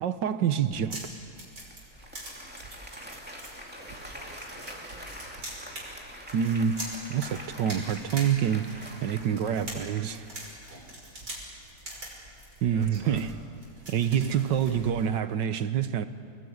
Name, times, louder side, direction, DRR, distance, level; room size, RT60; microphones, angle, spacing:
voice 1, 0.0-1.0 6.3-6.8 7.1-10.3 12.6-13.3 13.9-16.0, right 8 dB, 65° right, 1.6 m, -27 dB
sound 1, 0.6-15.1, right 1 dB, 45° right, 6.3 m, -44 dB
Applause, 1.6-10.5, equal, 5° right, 2.3 m, -45 dB
voice 2, 3.5-5.1 12.7-13.2 14.1-14.4, right 1 dB, 90° right, 6.2 m, -51 dB
26.5 x 20.0 x 9.6 m
omnidirectional pair, 2.1 m